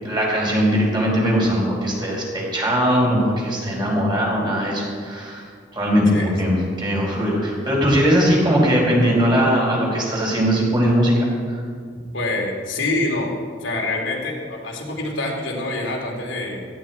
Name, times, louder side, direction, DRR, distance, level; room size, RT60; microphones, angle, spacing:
voice 1, 0.0-5.4 5.7-11.1 11.5-11.6, equal, 25° right, -4 dB, 4.7 m, -20 dB
voice 2, 12.1-16.6, left 2 dB, 75° left, -1 dB, 3.0 m, -26 dB
17.5 x 14.5 x 4.5 m, 2.1 s
head